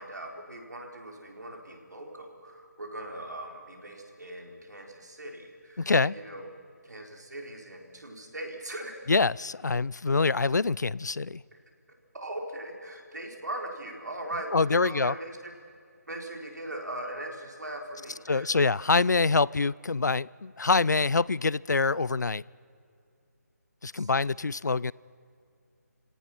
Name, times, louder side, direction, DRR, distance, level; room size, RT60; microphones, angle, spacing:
voice 1, 0.0-6.5 6.8-8.9 11.5-11.6 12.1-15.5 16.1-18.5 23.9-24.1, right 1 dB, 80° right, 4.3 m, -40 dB
voice 2, 5.8-6.1 9.1-11.4 14.5-15.1 18.3-22.4 23.8-24.9, left 4 dB, 85° left, 0.4 m, -25 dB
30.0 x 17.5 x 6.0 m
figure-of-eight pair, 155°, 9 cm